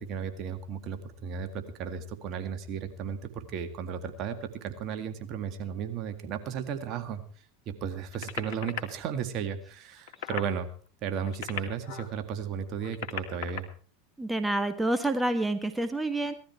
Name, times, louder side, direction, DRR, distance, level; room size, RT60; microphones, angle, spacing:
voice 1, 0.0-7.2 7.7-10.7 11.0-13.7, right 7 dB, 50° right, 8 dB, 2.0 m, -34 dB
sound 1, 8.1-8.8 9.9-10.5 11.2-12.1 12.7-13.6 14.8-14.9, left 10 dB, 65° left, 2.4 m, -37 dB
voice 2, 14.2-16.3, right 1 dB, 10° right, 9 dB, 1.7 m, -28 dB
18.0 x 13.0 x 4.6 m, 0.43 s
hypercardioid pair, 90°, 0 cm